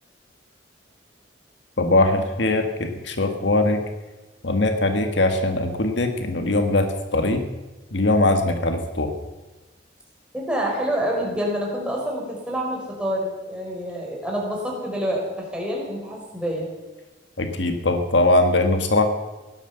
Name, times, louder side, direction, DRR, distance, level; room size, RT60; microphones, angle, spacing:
voice 1, 1.8-3.8 4.4-7.4 7.9-9.1 17.4-19.0, left 2 dB, 70° left, 6 dB, 1.7 m, -21 dB
voice 2, 10.3-16.7, equal, 5° right, -2 dB, 4.5 m, -27 dB
17.5 x 12.0 x 7.0 m, 1.1 s
head